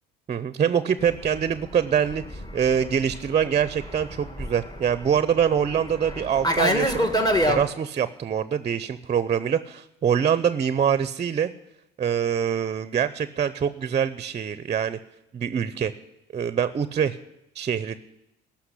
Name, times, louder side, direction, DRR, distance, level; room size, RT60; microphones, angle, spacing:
voice 1, 0.3-7.1 7.5-11.5 12.0-15.0 15.3-15.9 16.3-17.2 17.5-18.0, right 8 dB, 35° right, 15 dB, 0.6 m, -24 dB
Fixed-wing aircraft airplane, 1.1-7.6, equal, 20° left, 1.7 m, -27 dB
14.0 x 5.9 x 10.0 m, 0.90 s
supercardioid pair, 85°, 20 cm